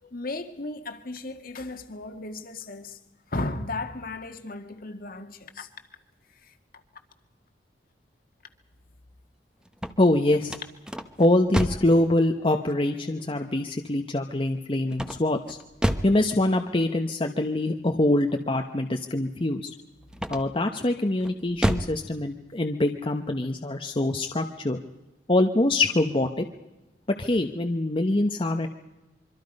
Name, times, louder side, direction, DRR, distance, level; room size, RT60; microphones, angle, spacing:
voice 1, 0.0-3.0 3.3-5.7 6.4-6.5, left 2 dB, 55° left, 1.8 m, -35 dB
sound 1, 9.6-12.0 14.9-16.2 20.1-20.7 21.2-22.0, equal, 5° right, 1.0 m, -29 dB
voice 2, 10.0-10.6 11.2-15.6 16.0-19.7 20.3-24.8 25.3-26.4 27.1-28.7, left 1 dB, 30° left, 1.0 m, -24 dB
25.5 x 24.0 x 5.4 m
head